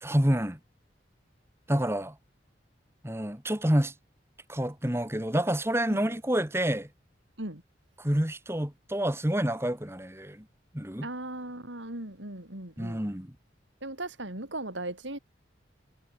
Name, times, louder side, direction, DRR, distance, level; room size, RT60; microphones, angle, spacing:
voice 1, 0.0-0.6 1.7-2.2 3.0-3.9 4.5-6.9 8.0-10.5 10.7-11.1 12.8-13.3, equal, 15° right, 2.2 m, -28 dB
voice 2, 11.0-13.0 13.8-15.2, right 1 dB, 80° right, 6.7 m, -37 dB
head